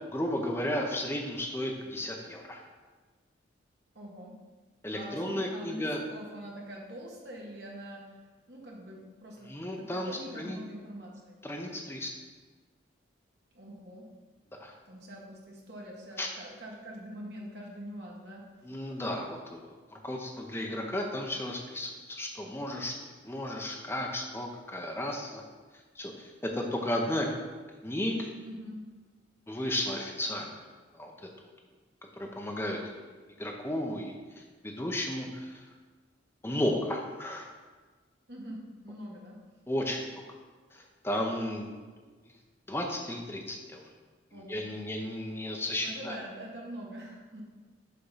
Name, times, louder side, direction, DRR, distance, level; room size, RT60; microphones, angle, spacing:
voice 1, 0.1-2.6 4.8-6.0 9.4-10.6 11.4-12.1 14.5-14.7 16.2-16.3 18.6-22.9 23.2-25.4 26.0-27.3 27.8-28.3 29.5-30.5 30.9-31.3 32.2-32.8 33.4-34.1 34.6-35.5 36.4-37.5 39.7-40.1 40.7-41.7 42.7-43.9 44.3-46.2, left 1 dB, 10° left, 1 dB, 0.7 m, -34 dB
voice 2, 3.9-4.4 4.9-8.2 8.5-9.5 9.8-11.4 13.5-14.1 14.9-18.4 28.4-28.9 38.3-39.4 44.3-45.1 45.8-47.4, equal, 60° right, -2 dB, 1.4 m, -44 dB
6.7 x 3.7 x 5.6 m, 1.4 s
head